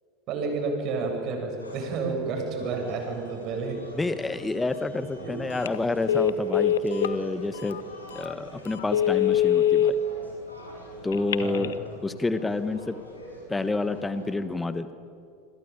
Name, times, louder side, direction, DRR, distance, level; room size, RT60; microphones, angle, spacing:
voice 1, 0.3-3.8 5.2-5.4 11.4-11.8, right 4 dB, 45° right, 3 dB, 7.7 m, -30 dB
sound 1, 1.6-14.4, equal, 90° left, 7.1 m, -47 dB
voice 2, 3.9-7.8 8.1-10.0 11.0-11.7 12.0-12.9 13.5-14.9, left 3 dB, 10° left, 12 dB, 1.3 m, -29 dB
Telephone, 5.5-5.8 6.1-7.2 7.7-7.8 8.2-8.3 8.8-9.9 11.1-11.7, left 11 dB, 70° left, 1.1 m, -23 dB
28.0 x 23.0 x 9.0 m, 2.6 s
figure-of-eight pair, 80°, 0 cm